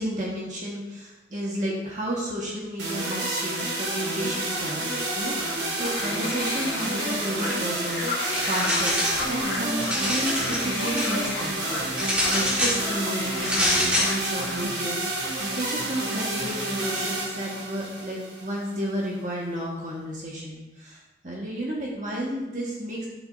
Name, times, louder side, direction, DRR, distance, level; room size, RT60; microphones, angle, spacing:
voice 1, 0.0-23.1, right 1 dB, 45° right, -4 dB, 1.6 m, -32 dB
sound 1, 2.8-18.8, right 1 dB, 80° right, 2.3 m, -30 dB
sound 2, 5.2-14.6, left 3 dB, 80° left, 1.9 m, -34 dB
sound 3, 8.2-9.3 9.7-11.1 12.0-12.8 13.4-14.2, equal, 5° right, 1.6 m, -26 dB
11.0 x 7.3 x 2.7 m, 1.0 s
head